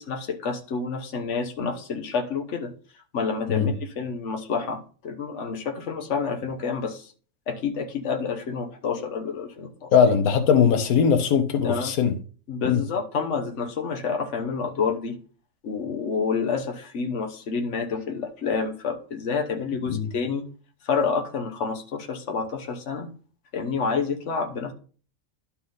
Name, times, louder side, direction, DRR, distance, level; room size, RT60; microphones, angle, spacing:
voice 1, 0.0-2.7 3.1-7.1 7.5-9.9 11.6-11.9 12.5-15.2 15.6-20.4 20.8-23.1 23.5-24.7, left 5 dB, 60° left, 1.4 m, -28 dB
voice 2, 9.9-12.1 12.6-12.8 19.9-20.1, left 7 dB, 90° left, 1.3 m, -20 dB
11.5 x 4.3 x 3.9 m
omnidirectional pair, 1.5 m